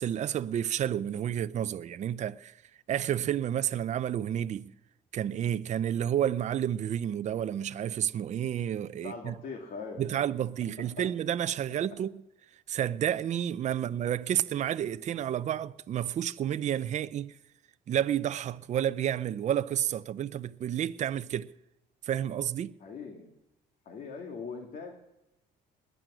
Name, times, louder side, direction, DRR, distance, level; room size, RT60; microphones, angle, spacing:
voice 1, 0.0-2.6 2.9-4.7 5.1-9.3 10.0-12.2 12.7-17.4 17.9-21.5 22.0-22.8, right 10 dB, 45° right, 0.5 m, -30 dB
voice 2, 9.0-10.2 22.8-23.3 23.9-24.9, left 4 dB, 55° left, 2.3 m, -41 dB
21.0 x 9.3 x 6.2 m
cardioid pair, 110°, 17 cm